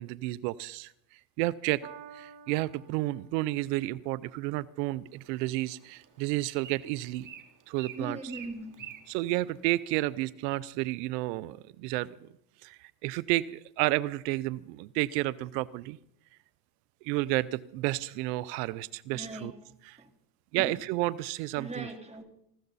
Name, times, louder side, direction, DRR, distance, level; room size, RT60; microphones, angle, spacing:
voice 1, 0.0-1.8 2.1-7.3 7.7-8.2 9.1-12.3 12.6-16.0 17.0-19.5 19.8-20.0 20.5-21.9, right 18 dB, 85° right, 19 dB, 0.7 m, -31 dB
Piano, 1.8-8.4 9.2-9.3, right 8 dB, 55° right, 2.8 m, -55 dB
Bird, 5.1-10.2, right 9 dB, 40° right, 2.2 m, -50 dB
voice 2, 8.0-8.8 19.1-19.5 20.0-20.1 20.6-20.7 21.6-22.2, right 2 dB, 15° right, 3 dB, 3.5 m, -40 dB
20.0 x 16.0 x 4.1 m, 0.75 s
supercardioid pair, 100°, 49 cm